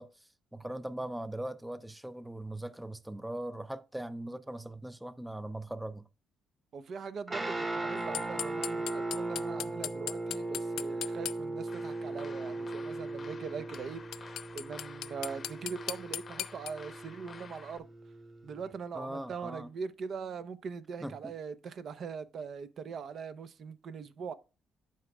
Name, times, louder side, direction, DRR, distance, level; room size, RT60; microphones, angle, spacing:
voice 1, 0.0-6.1 18.9-19.7 21.0-21.3, right 1 dB, 5° right, 0.4 m, -40 dB
voice 2, 6.7-17.8 18.4-24.3, right 6 dB, 60° right, 0.7 m, -41 dB
Guitar, 7.3-18.7, right 2 dB, 25° right, 1.4 m, -38 dB
sound 1, 8.1-11.4 13.7-13.8 14.1-16.7, left 12 dB, 80° left, 0.3 m, -36 dB
sound 2, 11.7-17.8, left 5 dB, 40° left, 0.7 m, -51 dB
12.0 x 4.9 x 2.3 m
cardioid pair, 90°, 0 cm